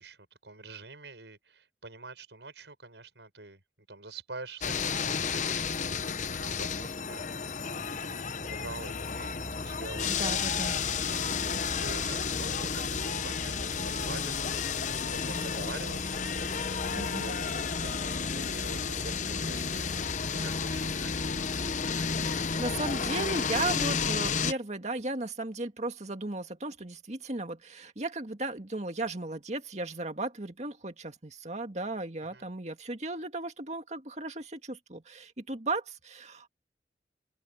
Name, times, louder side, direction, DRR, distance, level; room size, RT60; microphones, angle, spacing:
voice 1, 0.0-10.3 10.5-21.4 32.3-32.4, right 3 dB, 85° right, 7.3 m, -46 dB
sound 1, 4.6-24.5, left 6 dB, 45° left, 0.8 m, -32 dB
sound 2, 8.0-22.5, right 1 dB, 15° right, 0.5 m, -46 dB
voice 2, 10.1-10.8 17.0-17.3 22.2-36.5, right 2 dB, 40° right, 2.0 m, -35 dB
sound 3, 10.4-18.0, left 2 dB, 80° left, 6.5 m, -53 dB
open air
head